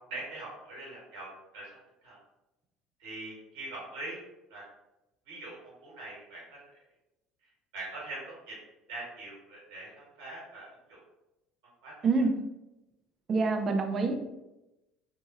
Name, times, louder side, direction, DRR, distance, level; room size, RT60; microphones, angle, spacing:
voice 1, 0.1-1.8 2.0-2.2 3.0-4.2 4.5-4.6 5.3-5.6 5.8-6.6 7.7-8.6 8.9-9.9 10.2-11.0 11.8-12.3, right 2 dB, 70° right, -5 dB, 1.3 m, -42 dB
voice 2, 13.3-14.2, right 3 dB, 40° right, 4 dB, 0.5 m, -26 dB
2.9 x 2.2 x 2.9 m, 0.95 s
hypercardioid pair, 60°, 0 cm